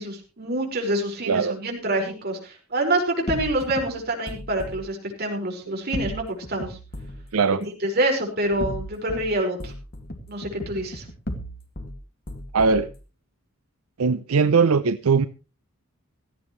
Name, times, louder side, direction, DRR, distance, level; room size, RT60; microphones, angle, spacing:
voice 1, 0.0-6.8 7.8-9.7 10.3-11.1, right 1 dB, 45° right, 5.2 m, -26 dB
voice 2, 1.3-1.6 7.3-7.6 12.5-12.9 14.0-15.3, right 5 dB, 80° right, 0.6 m, -20 dB
sound 1, 3.3-4.8 5.9-7.2 8.4-9.3 9.6-11.9 12.3-12.9, equal, 45° left, 2.1 m, -34 dB
17.5 x 14.5 x 3.2 m
head